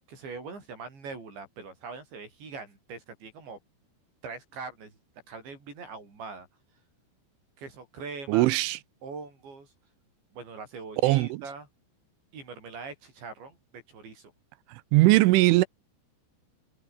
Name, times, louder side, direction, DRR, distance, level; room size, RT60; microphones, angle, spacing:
voice 1, 0.1-3.6 4.2-5.0 5.3-6.5 7.6-8.5 9.0-9.7 10.3-11.7 12.3-14.3, right 4 dB, 65° right, 10.5 m, -42 dB
voice 2, 8.3-8.8 11.0-11.4 14.7-15.7, right 20 dB, 85° right, 3.2 m, -20 dB
omnidirectional pair, 5.6 m